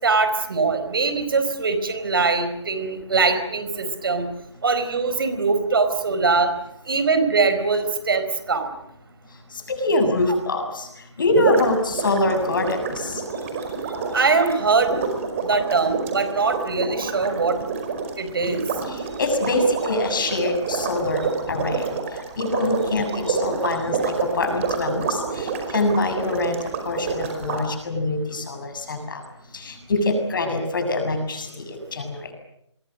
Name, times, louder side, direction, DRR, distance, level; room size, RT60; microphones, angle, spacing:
voice 1, 0.0-4.3 4.6-6.5 6.8-8.8 14.1-15.0 15.4-17.6 18.2-18.6, right 4 dB, 50° right, 9 dB, 4.6 m, -22 dB
voice 2, 9.5-13.2 18.9-29.2 29.5-32.3, left 2 dB, 45° left, 6 dB, 7.2 m, -25 dB
sound 1, 11.3-27.6, right 5 dB, 25° right, 5.1 m, -28 dB
30.0 x 23.0 x 6.6 m, 0.77 s
figure-of-eight pair, 150°, 15 cm